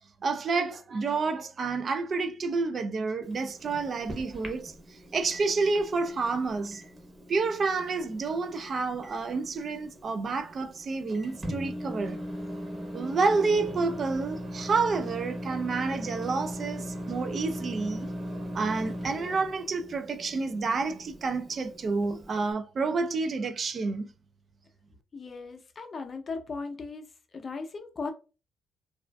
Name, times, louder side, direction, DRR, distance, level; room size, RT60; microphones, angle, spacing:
voice 1, 0.2-6.8 7.3-12.2 12.9-18.1 18.5-24.1, right 4 dB, 45° right, 0.3 m, -29 dB
Microwave oven, 3.2-22.5, equal, 25° right, 0.8 m, -40 dB
voice 2, 25.1-27.0 27.3-28.1, left 4 dB, 40° left, 0.5 m, -37 dB
2.4 x 2.3 x 2.2 m
cardioid pair, 90°, 0 cm